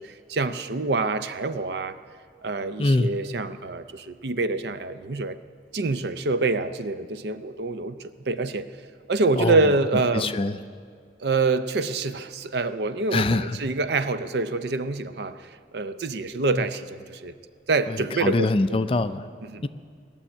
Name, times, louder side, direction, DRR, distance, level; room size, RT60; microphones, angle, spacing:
voice 1, 0.0-2.0 2.4-5.4 5.7-8.7 9.1-10.4 11.2-17.3 17.7-18.5 19.4-19.6, right 3 dB, 65° right, 11 dB, 0.6 m, -26 dB
voice 2, 2.8-3.1 9.4-9.6 10.1-10.6 13.1-13.6 16.5-16.6 17.9-19.3 19.6-19.7, left 2 dB, 30° left, 11 dB, 0.4 m, -24 dB
17.0 x 7.1 x 9.9 m, 2.1 s
head